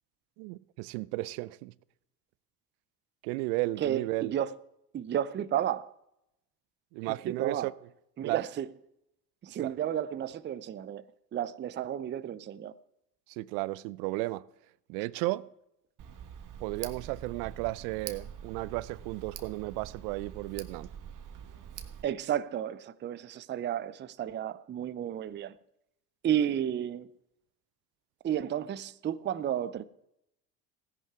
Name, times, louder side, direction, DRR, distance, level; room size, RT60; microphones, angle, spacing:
voice 1, 0.4-1.7 3.2-4.3 6.9-7.7 8.2-8.4 9.6-9.7 13.3-14.5 14.9-15.5 16.6-20.9, right 20 dB, 65° right, 0.6 m, -34 dB
voice 2, 3.8-4.5 4.9-5.9 7.0-7.7 8.2-8.7 9.4-11.0 11.3-12.7 22.0-25.5 26.2-27.1 28.2-29.8, right 10 dB, 25° right, 0.5 m, -32 dB
Tick, 16.0-22.0, right 8 dB, 40° right, 1.5 m, -45 dB
16.5 x 10.5 x 3.6 m
hypercardioid pair, 75°, 49 cm